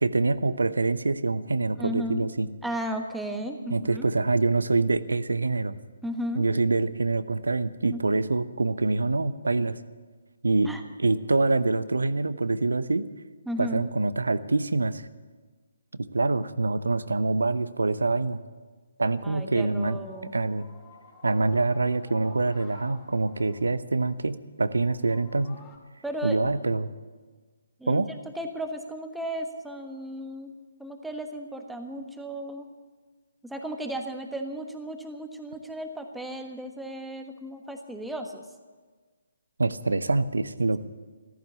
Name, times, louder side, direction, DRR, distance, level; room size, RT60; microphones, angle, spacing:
voice 1, 0.0-2.5 3.7-5.7 6.4-9.8 10.4-10.7 11.0-13.1 13.6-15.1 15.9-18.4 19.0-20.0 20.3-20.7 21.2-25.6 26.2-26.9 27.9-28.1 39.6-40.8, right 3 dB, 75° right, 15 dB, 0.8 m, -25 dB
voice 2, 1.8-2.3 2.6-4.0 6.0-6.4 7.9-8.0 10.6-10.8 13.5-13.8 19.2-20.3 26.0-26.5 27.8-28.0 28.3-30.5 30.8-32.7 33.4-38.4, equal, 5° right, 5 dB, 1.3 m, -35 dB
sound 1, 19.7-25.8, left 5 dB, 20° left, 4.2 m, -54 dB
14.5 x 14.0 x 7.0 m, 1.4 s
figure-of-eight pair, 140°, 0 cm